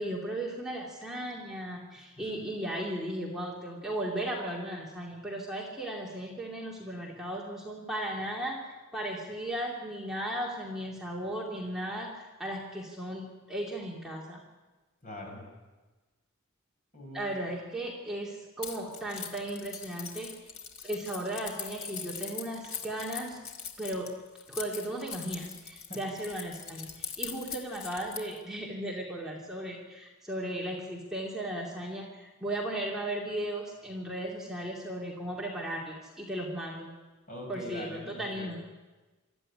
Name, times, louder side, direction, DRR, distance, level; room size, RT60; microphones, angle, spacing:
voice 1, 0.0-14.4 17.1-20.3 20.8-23.4 23.8-24.1 24.5-36.9 37.5-38.6, right 1 dB, 5° right, -4 dB, 2.7 m, -36 dB
voice 2, 15.0-15.4 16.9-17.3 25.9-26.0 37.3-38.6, left 1 dB, 40° left, 1 dB, 6.8 m, -42 dB
Keys jangling, 18.6-28.4, left 7 dB, 80° left, 2.9 m, -41 dB
24.0 x 14.0 x 10.0 m, 1.2 s
head